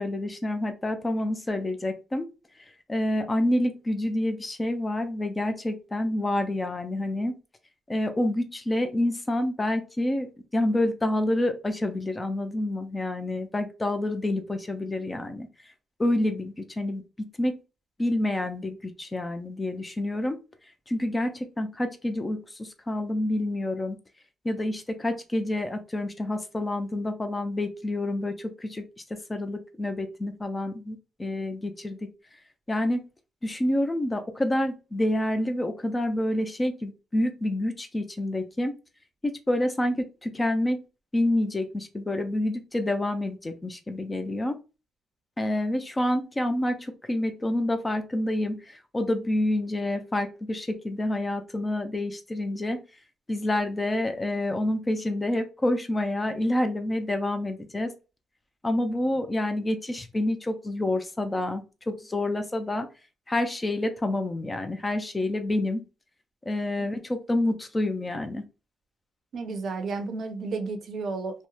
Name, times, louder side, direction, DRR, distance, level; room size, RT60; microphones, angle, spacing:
voice 1, 0.0-2.3 2.9-7.4 7.9-10.3 10.5-15.5 16.0-17.5 18.0-20.4 20.9-24.0 24.4-28.9 29.1-32.1 32.7-33.1 33.4-38.7 39.2-40.8 41.1-44.6 45.4-52.8 53.3-57.9 58.6-62.9 63.3-65.8 66.5-68.4, left 1 dB, 20° left, 7 dB, 0.4 m, -28 dB
voice 2, 69.3-71.5, right 4 dB, 60° right, 6 dB, 0.5 m, -32 dB
2.8 x 2.0 x 2.2 m, 0.30 s
cardioid pair, 90°, 0 cm